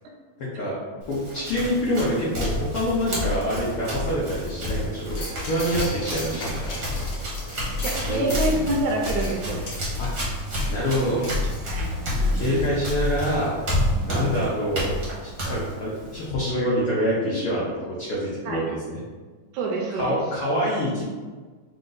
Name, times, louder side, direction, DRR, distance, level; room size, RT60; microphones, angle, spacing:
voice 1, 0.4-5.0 5.4-6.8 8.0-8.4 10.0-10.3 10.7-11.2 12.3-13.6 14.0-15.0 15.2-19.0 19.9-21.0, equal, 85° left, -6 dB, 1.2 m, -26 dB
Run, 1.0-16.3, left 1 dB, 55° right, 1.0 m, -29 dB
sound 1, 5.1-12.0 12.4-12.5, left 1 dB, 50° left, 1.3 m, -37 dB
voice 2, 7.8-9.7 11.7-11.9 12.2-12.7 13.9-14.3 18.5-18.6 19.5-20.2, right 2 dB, 80° right, 0 dB, 1.9 m, -27 dB
5.2 x 2.5 x 3.9 m, 1.4 s
omnidirectional pair, 3.7 m